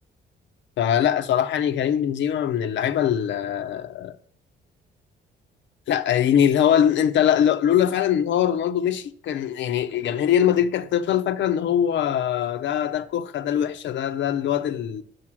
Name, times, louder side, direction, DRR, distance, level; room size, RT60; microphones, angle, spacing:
voice 1, 0.8-4.2 5.9-15.0, left 9 dB, 70° left, 0.5 m, -22 dB
6.4 x 6.1 x 6.0 m
cardioid pair, 90°, 20 cm